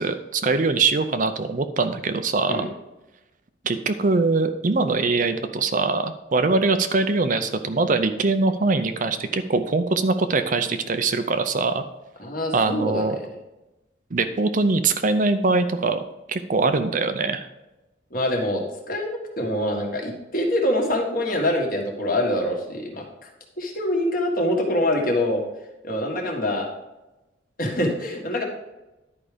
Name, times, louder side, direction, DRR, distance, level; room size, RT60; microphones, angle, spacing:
voice 1, 0.0-2.7 3.6-11.8 12.5-13.2 14.1-16.0 16.3-17.5, right 3 dB, 40° right, 9 dB, 0.5 m, -22 dB
voice 2, 12.2-13.1 18.1-23.0 23.6-25.4 25.8-26.7 27.6-28.4, left 1 dB, 45° left, 1 dB, 1.7 m, -25 dB
11.0 x 4.9 x 5.1 m, 1.0 s
head